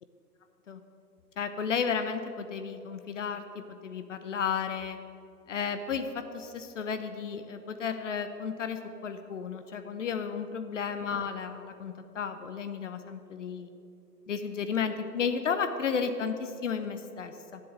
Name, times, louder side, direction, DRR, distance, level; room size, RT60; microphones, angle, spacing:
voice 1, 1.4-5.0 5.5-13.7 14.3-17.6, left 6 dB, 50° left, 8 dB, 0.8 m, -33 dB
10.5 x 7.9 x 7.6 m, 2.7 s
figure-of-eight pair, 130°, 49 cm